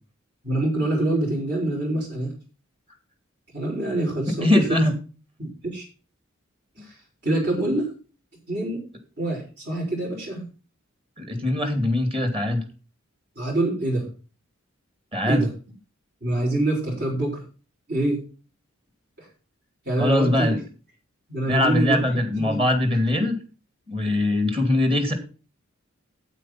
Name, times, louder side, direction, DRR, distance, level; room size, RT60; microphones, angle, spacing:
voice 1, 0.4-2.3 3.5-4.7 5.4-5.8 6.8-7.0 7.2-7.9 8.5-8.8 9.2-10.5 13.3-14.1 15.3-15.5 16.2-17.4 17.9-18.2 19.2-19.3 19.8-20.5 21.3-22.1 22.4-22.6, right 1 dB, 55° right, -5 dB, 5.0 m, -25 dB
voice 2, 4.4-4.9 6.8-6.9 11.2-12.6 15.1-15.4 20.0-20.6 21.5-23.4 23.9-25.1, left 1 dB, 25° right, 8 dB, 2.5 m, -22 dB
9.0 x 8.6 x 5.8 m, 0.35 s
head